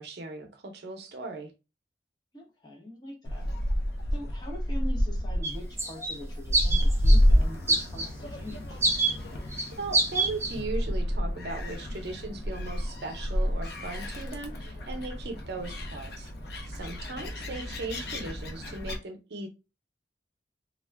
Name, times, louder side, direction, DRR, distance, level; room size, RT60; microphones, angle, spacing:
voice 1, 0.0-1.5 9.8-16.3 16.7-19.5, right 3 dB, 65° right, 0.6 m, -38 dB
voice 2, 2.3-3.5 4.1-8.8 17.2-17.4, left 1 dB, 25° left, 0.9 m, -43 dB
Gull seagull, 3.2-19.0, equal, 60° left, 0.6 m, -29 dB
sound 1, 5.4-5.5 5.8-6.2 6.5-7.2 7.7-8.1 8.8-9.1 9.5-9.7 9.9-10.6, right 2 dB, 15° right, 0.4 m, -26 dB
2.4 x 2.2 x 3.3 m
head